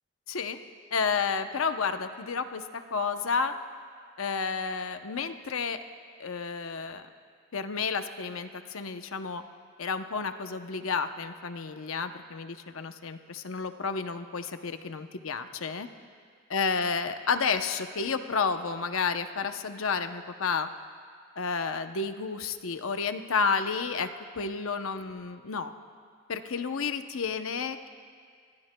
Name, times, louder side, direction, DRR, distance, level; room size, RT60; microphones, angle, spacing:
voice 1, 0.3-0.6 0.9-3.5 4.2-5.8 6.2-7.0 7.5-9.4 9.8-15.9 16.5-20.7 21.4-24.1 24.4-25.7 26.3-27.9, left 5 dB, 85° left, 8 dB, 0.7 m, -31 dB
27.0 x 20.5 x 2.2 m, 2.1 s
head